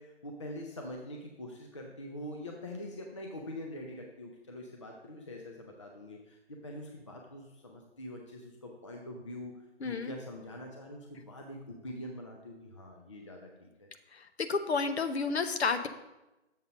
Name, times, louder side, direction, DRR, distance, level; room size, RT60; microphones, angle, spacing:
voice 1, 0.0-9.5 9.8-13.9, left 1 dB, 25° left, 1 dB, 0.5 m, -44 dB
voice 2, 9.8-10.1 14.1-15.9, left 4 dB, 65° left, 9 dB, 0.8 m, -31 dB
7.1 x 3.8 x 6.2 m, 0.99 s
figure-of-eight pair, 150°, 35 cm